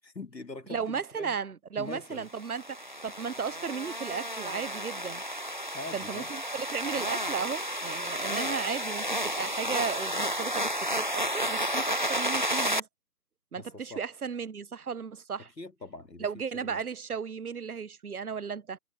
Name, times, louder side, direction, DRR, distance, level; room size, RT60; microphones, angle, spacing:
voice 1, 0.0-1.4 1.8-2.3 5.7-6.3 13.6-14.0 15.4-16.3 16.5-16.8, left 2 dB, 90° left, 2.5 m, -43 dB
voice 2, 0.7-5.2 5.9-12.9 13.5-15.5 16.2-18.8, right 6 dB, 65° right, 0.7 m, -35 dB
sound 1, 2.4-12.8, equal, 30° right, 0.9 m, -32 dB
figure-of-eight pair, 165°, 49 cm